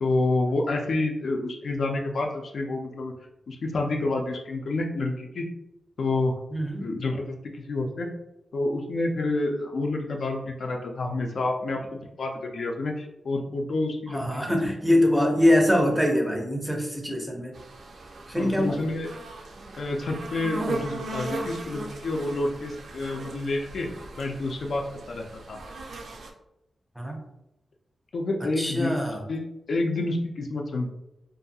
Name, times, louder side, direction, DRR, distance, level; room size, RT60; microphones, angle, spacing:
voice 1, 0.0-3.1 3.5-5.5 6.0-6.4 6.8-8.1 8.5-14.3 14.9-15.0 18.4-19.1 19.8-23.9 24.2-25.6 28.1-29.0 29.3-30.9, left 2 dB, 65° left, 2 dB, 0.4 m, -28 dB
voice 2, 6.5-6.9 14.1-17.6 18.3-18.8 27.0-27.3 28.6-29.2, left 1 dB, 5° right, 1 dB, 0.5 m, -23 dB
sound 1, 17.5-26.3, right 2 dB, 70° right, 0.4 m, -38 dB
2.6 x 2.3 x 2.7 m, 0.88 s
wide cardioid pair, 120°, 0 cm